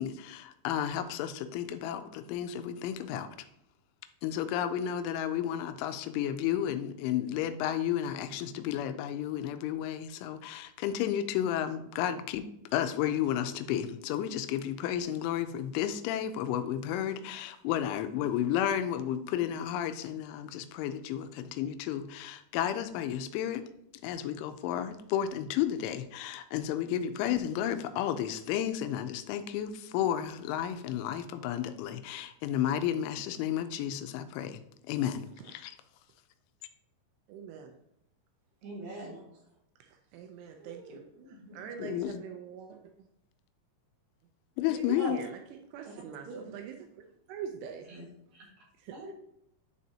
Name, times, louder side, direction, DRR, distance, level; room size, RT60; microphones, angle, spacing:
voice 1, 0.0-3.4 4.2-12.5 12.7-23.6 24.0-34.6 34.9-35.8 41.8-42.2 44.6-45.2, left 10 dB, 85° left, 10 dB, 3.0 m, -32 dB
voice 2, 37.3-37.7 40.1-41.0 41.5-42.8 44.7-45.4 45.7-47.9 48.8-49.0, right 7 dB, 90° right, 4 dB, 2.3 m, -43 dB
voice 3, 38.6-39.2 40.6-41.6 45.0-45.1 45.8-45.9 46.2-46.5 47.9-48.1 48.3-48.5 48.9-49.1, right 2 dB, 60° right, -5 dB, 2.8 m, -43 dB
11.5 x 4.2 x 2.8 m, 0.77 s
omnidirectional pair, 5.4 m